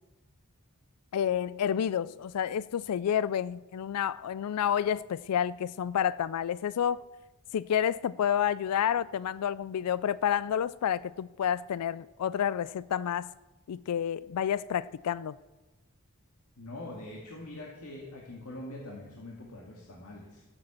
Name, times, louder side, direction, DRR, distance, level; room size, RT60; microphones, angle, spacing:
voice 1, 1.1-7.0 7.5-13.3 13.7-15.3, left 9 dB, 85° left, 0.4 m, -29 dB
voice 2, 16.6-20.4, left 1 dB, 70° left, 2.1 m, -43 dB
16.0 x 7.8 x 7.3 m
head